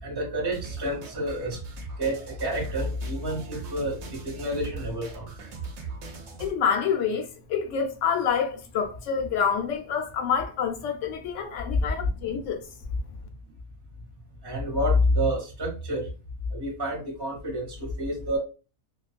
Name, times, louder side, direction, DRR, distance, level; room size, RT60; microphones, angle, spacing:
voice 1, 0.0-1.6 2.0-5.3 14.4-16.1 16.5-18.4, equal, 20° right, 0.8 m, -28 dB
sound 1, 0.5-6.5, right 4 dB, 65° right, 0.8 m, -40 dB
voice 2, 6.4-12.7, left 7 dB, 70° left, 0.8 m, -27 dB
2.4 x 2.2 x 2.4 m
omnidirectional pair, 1.5 m